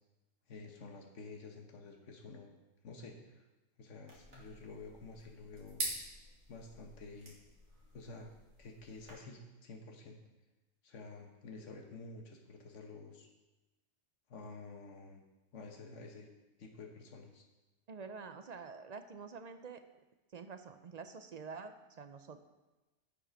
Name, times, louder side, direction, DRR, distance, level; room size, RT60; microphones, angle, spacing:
voice 1, 0.5-2.5 2.8-3.4 3.8-5.8 6.5-7.4 7.9-8.3 8.6-10.2 10.8-13.3 14.3-15.2 15.5-16.3 16.6-17.4, left 3 dB, 85° left, 2 dB, 1.4 m, -50 dB
sound 1, 4.1-9.1, right 2 dB, 75° right, 2.6 m, -46 dB
voice 2, 17.9-19.8 20.3-22.4, right 5 dB, 50° right, 9 dB, 0.5 m, -47 dB
8.5 x 7.5 x 5.2 m, 1.1 s
omnidirectional pair, 1.2 m